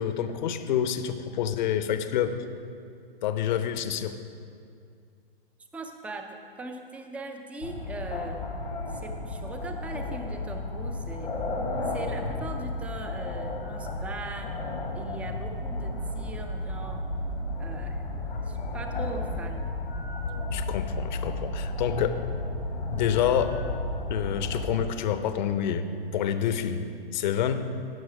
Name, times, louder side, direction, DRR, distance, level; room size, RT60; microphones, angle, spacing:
voice 1, 0.0-2.4 3.2-4.2 20.5-22.2 22.9-23.6 24.1-25.9 26.1-26.8 27.1-27.6, left 9 dB, 50° left, 10 dB, 0.8 m, -27 dB
voice 2, 5.7-8.5 8.9-11.4 11.9-14.6 14.9-17.0 17.6-18.0 18.4-19.6, right 3 dB, 5° right, 5 dB, 0.4 m, -40 dB
sound 1, 7.6-24.8, left 2 dB, 85° left, 2.1 m, -33 dB
17.5 x 6.1 x 4.9 m, 2.3 s
hypercardioid pair, 125°, 30 cm